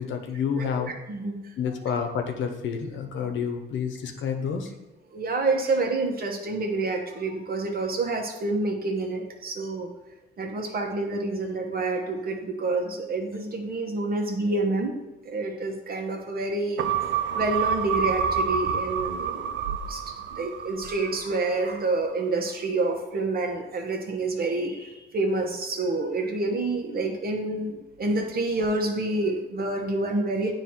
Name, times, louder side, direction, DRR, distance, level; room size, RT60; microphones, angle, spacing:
voice 1, 0.0-0.9 1.6-4.7, left 6 dB, 70° left, 5 dB, 0.9 m, -29 dB
voice 2, 1.1-1.5 5.1-9.9 10.4-14.9 15.2-16.9 17.3-20.0 20.3-30.5, right 2 dB, 50° right, 2 dB, 1.3 m, -28 dB
sound 1, 16.8-21.5 21.8-21.9, right 7 dB, 65° right, 0.5 m, -28 dB
9.1 x 3.0 x 4.3 m, 1.0 s
cardioid pair, 90°, 20 cm